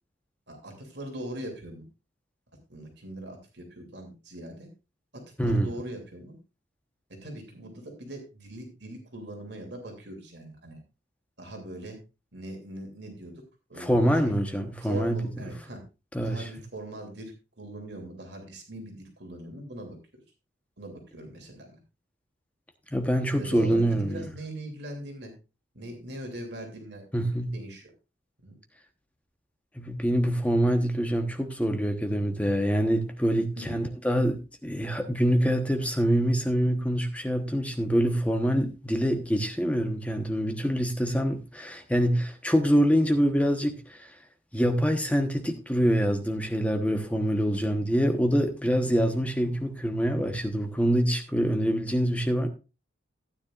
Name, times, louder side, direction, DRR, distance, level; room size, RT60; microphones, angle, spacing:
voice 1, 0.5-1.9 2.7-4.7 5.1-6.4 7.2-10.8 11.4-12.0 12.3-13.3 13.7-14.1 14.8-15.8 16.2-20.0 20.8-21.8 23.4-25.3 25.7-27.9 28.4-28.5 33.5-33.9, right 1 dB, 60° right, 2.9 m, -41 dB
voice 2, 5.4-5.7 13.8-15.2 16.1-16.5 22.9-24.2 27.1-27.5 29.8-44.1 44.5-52.5, equal, 5° left, 1.0 m, -25 dB
15.5 x 9.4 x 2.5 m
head